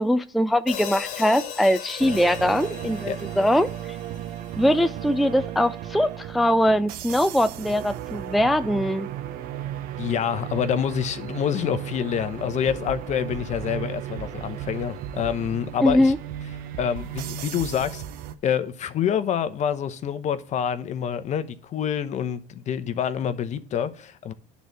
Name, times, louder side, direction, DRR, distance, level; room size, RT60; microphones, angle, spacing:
voice 1, 0.0-3.7 4.6-9.1 15.8-16.2, left 1 dB, ahead, 0.4 m, -22 dB
Hi-hat, 0.7-4.8, left 9 dB, 75° left, 1.6 m, -38 dB
sound 1, 2.0-18.3, right 11 dB, 60° right, 0.8 m, -35 dB
voice 2, 10.0-16.1 16.8-18.0 18.4-24.3, left 8 dB, 45° left, 0.9 m, -27 dB
10.0 x 4.1 x 6.3 m
supercardioid pair, 90°, 16 cm